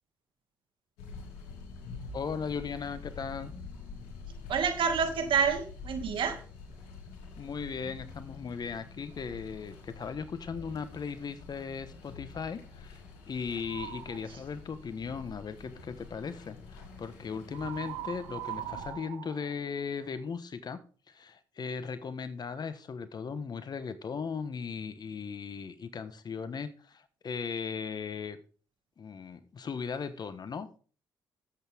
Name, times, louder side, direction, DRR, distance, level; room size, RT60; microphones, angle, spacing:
sound 1, 1.0-18.9, left 4 dB, 90° left, 2.8 m, -47 dB
voice 1, 2.1-3.5 7.4-13.0 13.3-20.8 21.1-28.4 29.0-30.8, left 6 dB, 50° left, 12 dB, 1.4 m, -37 dB
voice 2, 4.5-6.4, right 6 dB, 65° right, 6 dB, 2.4 m, -28 dB
sound 2, 13.6-14.2 17.5-20.3, right 13 dB, 85° right, 0.8 m, -41 dB
12.5 x 8.2 x 3.7 m, 0.40 s
supercardioid pair, 55°, 9 cm